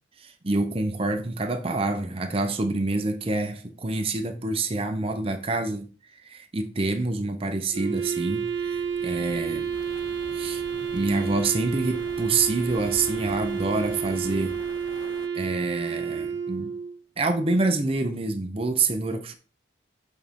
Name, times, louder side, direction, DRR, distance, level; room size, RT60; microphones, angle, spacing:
voice 1, 0.2-5.9 6.1-9.7 10.3-10.6 10.9-14.6 15.3-16.7 17.2-19.3, right 3 dB, 30° right, 0.6 m, -27 dB
Waves surf, 7.7-15.3, left 3 dB, 40° left, 0.5 m, -47 dB
Wind instrument woodwind instrument, 7.7-17.0, right 7 dB, 70° right, 0.8 m, -30 dB
sound 1, 9.7-15.3, left 4 dB, 90° left, 0.6 m, -48 dB
7.3 x 4.1 x 3.6 m
head